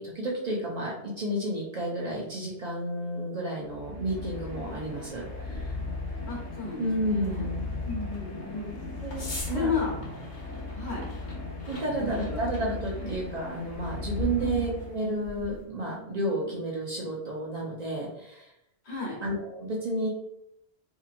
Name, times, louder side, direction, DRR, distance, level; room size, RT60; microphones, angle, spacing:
voice 1, 0.0-5.7 6.8-7.6 9.0-9.7 11.7-18.5 19.2-20.1, right 1 dB, 45° right, -4 dB, 0.6 m, -31 dB
sound 1, 3.6-15.3, left 3 dB, 15° left, 0.7 m, -37 dB
sound 2, 4.7-15.6, left 1 dB, 50° left, 0.9 m, -45 dB
sound 3, 5.4-16.6, left 4 dB, 75° right, 1.5 m, -48 dB
voice 2, 6.3-7.5 7.8-8.8 9.5-9.9 10.7-11.1 12.0-12.7 13.0-13.1 14.4-14.6 18.8-19.2, left 5 dB, 75° left, -3 dB, 1.2 m, -33 dB
2.8 x 2.7 x 2.5 m, 0.77 s
omnidirectional pair, 1.1 m